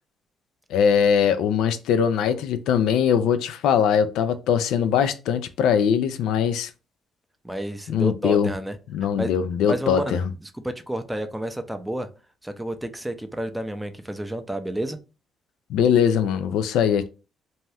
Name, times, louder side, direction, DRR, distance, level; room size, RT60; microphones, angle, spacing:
voice 1, 0.7-6.7 7.9-8.5 8.9-10.2 15.7-17.1, left 8 dB, 85° left, 11 dB, 0.3 m, -21 dB
voice 2, 7.4-8.8 9.2-9.3 9.7-12.1 12.4-15.0, right 1 dB, 5° right, 8 dB, 0.4 m, -30 dB
2.7 x 2.2 x 3.2 m, 0.32 s
cardioid pair, 115°, 0 cm